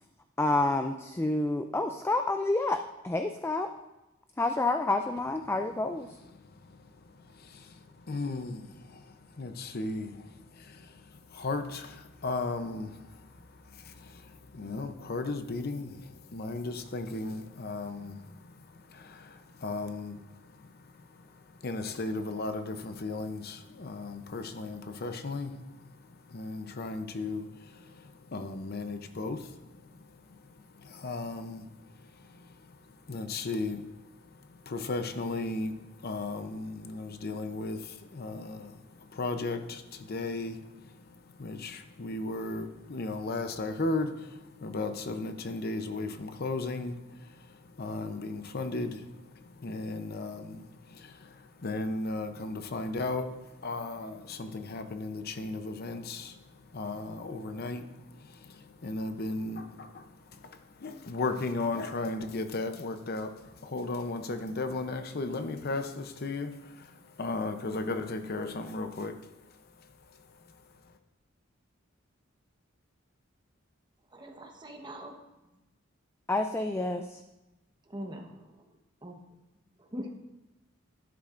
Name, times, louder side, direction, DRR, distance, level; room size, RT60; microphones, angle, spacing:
voice 1, 0.4-3.7 4.4-6.1 76.3-77.2, left 2 dB, 10° left, 6 dB, 0.3 m, -29 dB
voice 2, 6.3-69.3 69.8-69.9, left 3 dB, 50° left, 8 dB, 0.7 m, -36 dB
voice 3, 74.1-75.1 77.9-78.7 79.0-79.1 79.8-80.1, equal, 20° right, 3 dB, 1.1 m, -42 dB
12.5 x 10.5 x 2.5 m, 1.0 s
head